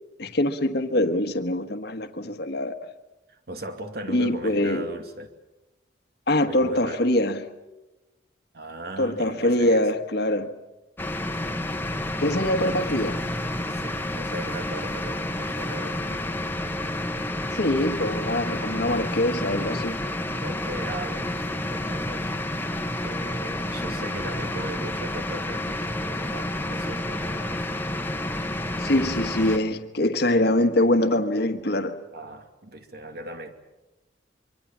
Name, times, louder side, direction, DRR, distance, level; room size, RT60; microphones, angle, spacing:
voice 1, 0.2-2.9 4.1-4.8 6.3-7.4 9.0-10.5 12.2-13.2 17.5-20.0 28.8-32.0, left 1 dB, 60° left, 1.5 m, -24 dB
voice 2, 3.3-5.3 6.5-7.1 8.5-9.9 13.7-16.3 20.4-22.4 22.8-27.7 32.1-33.5, right 1 dB, 60° right, 2.6 m, -38 dB
sound 1, 11.0-29.6, left 1 dB, 10° left, 1.2 m, -30 dB
24.5 x 24.5 x 7.5 m
head